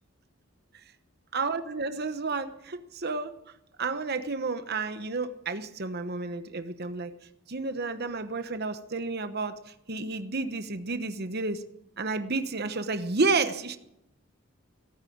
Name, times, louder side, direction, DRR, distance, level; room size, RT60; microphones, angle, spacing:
voice 1, 1.3-3.4 3.8-7.1 7.5-11.6 12.0-13.8, right 3 dB, 45° right, 11 dB, 1.0 m, -31 dB
17.5 x 9.0 x 8.6 m, 0.83 s
head